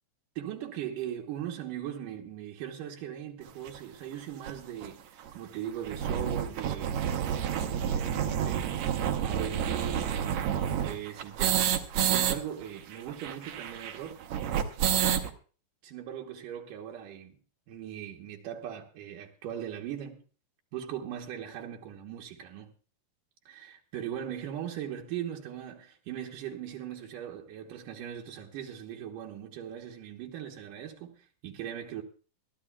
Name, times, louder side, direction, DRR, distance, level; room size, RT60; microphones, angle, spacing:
voice 1, 0.4-14.2 15.8-17.4 17.7-20.2 20.7-22.7 23.5-32.0, right 10 dB, 85° right, 2.7 m, -39 dB
sound 1, 3.7-3.8 4.5-4.6 4.8-4.9 5.2-5.3 5.7-12.4 12.6-12.7 12.9-15.3, right 9 dB, 65° right, 2.0 m, -29 dB
22.0 x 13.5 x 2.3 m
omnidirectional pair, 3.8 m